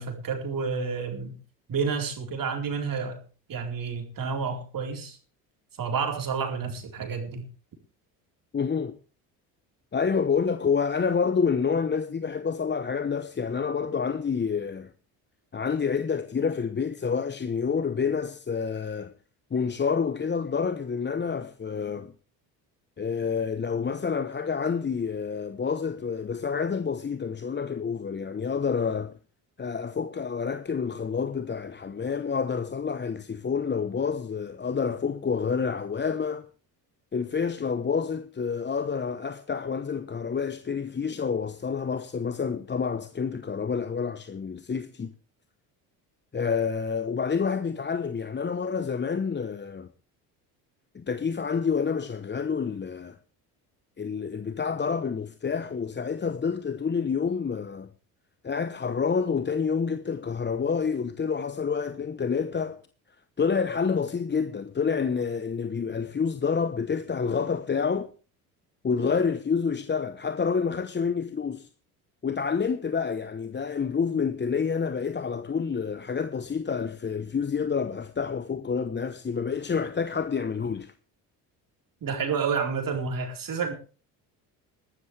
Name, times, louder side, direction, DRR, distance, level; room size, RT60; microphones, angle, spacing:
voice 1, 0.0-1.3 1.7-3.2 3.5-5.2 5.8-7.4 82.0-83.7, right 5 dB, 50° right, 4.3 m, -30 dB
voice 2, 8.5-9.0 9.9-14.9 15.5-19.1 19.5-22.1 23.0-29.1 29.6-36.5 37.1-45.1 46.3-49.9 50.9-53.2 54.0-57.9 58.4-62.8 63.4-68.1 68.8-71.7 72.2-80.9, left 6 dB, 25° left, 1.0 m, -28 dB
20.5 x 12.5 x 3.4 m
hypercardioid pair, 70°, 44 cm